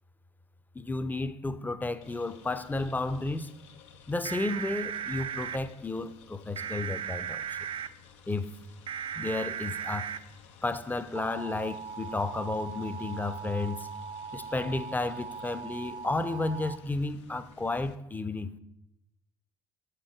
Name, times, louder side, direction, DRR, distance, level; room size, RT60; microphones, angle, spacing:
voice 1, 0.7-3.5 4.1-7.6 8.3-8.5 9.1-10.1 10.6-13.9 14.3-18.5, left 2 dB, 10° left, 0.5 m, -32 dB
sound 1, 2.0-17.9, left 7 dB, 80° left, 0.6 m, -56 dB
sound 2, 4.3-5.6 6.6-7.9 8.9-10.2 11.2-16.8, right 7 dB, 40° right, 0.4 m, -38 dB
7.3 x 4.6 x 4.6 m
hypercardioid pair, 55°, 15 cm